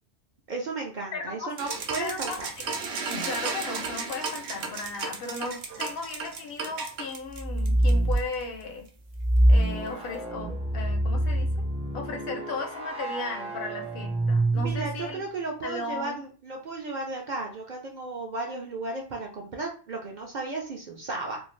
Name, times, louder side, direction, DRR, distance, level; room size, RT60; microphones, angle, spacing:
voice 1, 0.5-2.5 14.5-21.4, right 3 dB, 55° right, 0 dB, 0.6 m, -34 dB
voice 2, 1.1-1.5 2.0-2.4 3.1-8.9 9.5-11.7 11.9-15.2 15.6-16.2, left 3 dB, 65° left, 4 dB, 0.8 m, -36 dB
sound 1, 1.6-8.4, right 4 dB, 90° right, 0.9 m, -34 dB
sound 2, 7.3-8.3 9.1-15.1, right 1 dB, 10° right, 0.3 m, -26 dB
2.6 x 2.4 x 3.0 m, 0.39 s
omnidirectional pair, 1.1 m